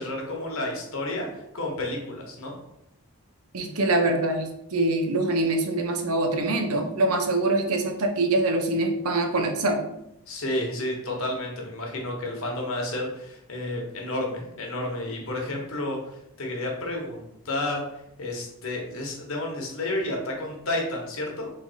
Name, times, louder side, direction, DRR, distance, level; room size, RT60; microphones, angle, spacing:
voice 1, 0.0-2.6 10.3-17.8 18.2-21.5, left 1 dB, 70° left, 0 dB, 1.2 m, -31 dB
voice 2, 3.5-9.8, right 2 dB, 80° right, 4 dB, 0.7 m, -24 dB
3.8 x 3.3 x 4.0 m, 0.80 s
head